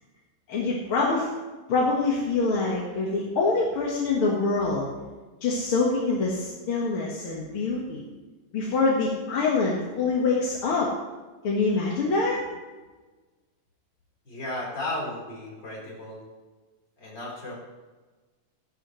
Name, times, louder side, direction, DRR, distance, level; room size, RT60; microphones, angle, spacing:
voice 1, 0.5-1.3 1.7-4.9 5.4-8.0 8.5-10.9 11.4-12.4, left 3 dB, 50° left, -4 dB, 2.0 m, -25 dB
voice 2, 14.2-16.2 17.0-17.5, left 1 dB, 30° left, -5 dB, 4.6 m, -34 dB
15.5 x 11.5 x 3.2 m, 1.3 s
omnidirectional pair, 3.8 m